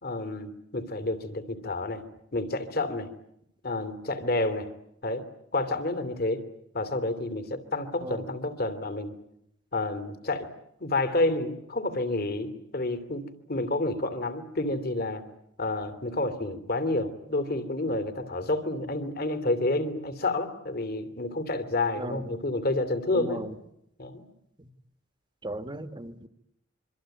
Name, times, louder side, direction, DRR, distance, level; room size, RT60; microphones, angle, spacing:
voice 1, 0.0-2.0 2.3-3.1 3.6-4.7 5.0-5.3 5.5-6.4 6.7-9.1 9.7-10.5 10.8-13.2 13.5-15.3 15.6-23.4 24.0-24.2, left 2 dB, 50° left, 3.0 m, -29 dB
voice 2, 23.1-23.5 24.6-24.7 25.4-26.3, right 1 dB, 25° right, 1.5 m, -36 dB
26.5 x 24.5 x 9.2 m
head